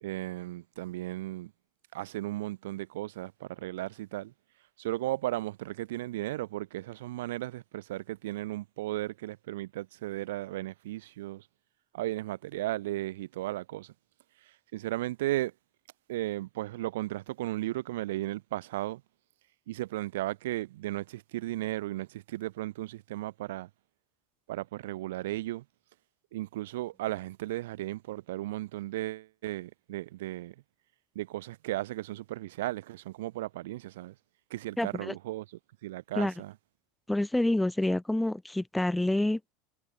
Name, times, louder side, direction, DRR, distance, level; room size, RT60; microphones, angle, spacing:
voice 1, 0.0-1.5 1.9-4.3 4.8-11.4 11.9-13.9 14.7-15.5 16.1-19.0 19.7-23.7 24.5-25.6 26.3-30.5 31.2-34.1 34.5-35.5 35.8-36.5, right 16 dB, 85° right, 0.5 m, -35 dB
voice 2, 34.8-35.2 36.2-36.3 37.1-39.5, left 1 dB, 5° left, 0.8 m, -28 dB
supercardioid pair, 110°, 0 cm